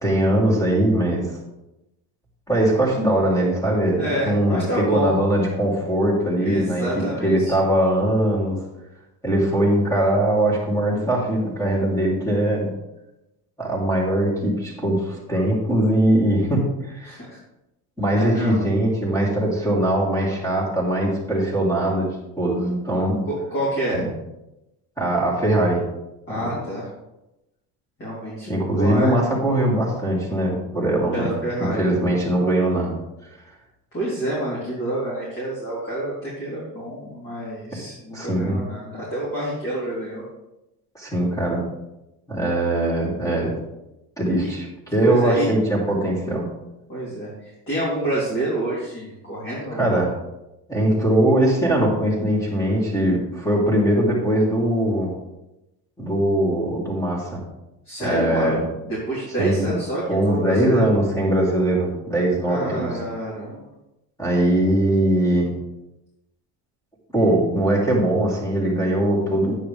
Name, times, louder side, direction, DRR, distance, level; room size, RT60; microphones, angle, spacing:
voice 1, 0.0-1.3 2.5-8.6 9.2-12.7 13.6-17.2 18.0-22.1 22.4-23.2 23.9-24.1 25.0-25.8 26.3-26.5 28.5-31.3 31.6-32.9 37.7-37.8 38.1-38.6 40.9-41.6 42.3-43.5 44.2-44.6 44.9-46.4 49.7-50.1 50.7-55.1 56.0-57.4 58.0-58.6 59.4-59.8 60.1-62.9 64.2-65.5 67.1-69.6, right 1 dB, 10° left, -4 dB, 3.3 m, -21 dB
voice 2, 4.0-5.1 6.4-7.5 17.0-17.4 18.1-18.6 23.3-24.0 26.3-26.9 28.0-29.2 31.1-32.1 33.9-40.2 45.0-45.5 46.9-50.0 57.9-60.9 62.5-63.7, right 1 dB, 30° left, -7 dB, 3.7 m, -28 dB
10.5 x 9.0 x 3.5 m, 0.95 s
cardioid pair, 145°, 39 cm